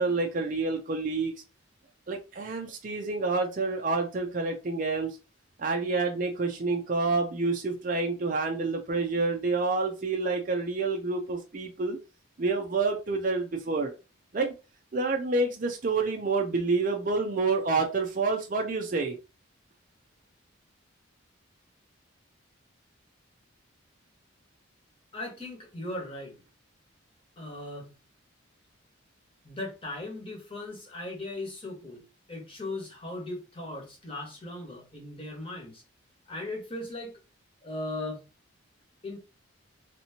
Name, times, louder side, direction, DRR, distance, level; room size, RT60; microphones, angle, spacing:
voice 1, 0.0-1.3 2.1-5.2 5.6-12.0 12.4-13.9 14.3-14.5 14.9-19.2, right 3 dB, 40° right, 2 dB, 0.5 m, -28 dB
voice 2, 25.1-26.3 27.4-27.9 29.4-32.0 32.3-35.8 36.3-37.1 37.6-38.3 39.0-39.2, left 2 dB, 25° left, 0 dB, 1.2 m, -38 dB
3.3 x 2.8 x 2.8 m, 0.30 s
head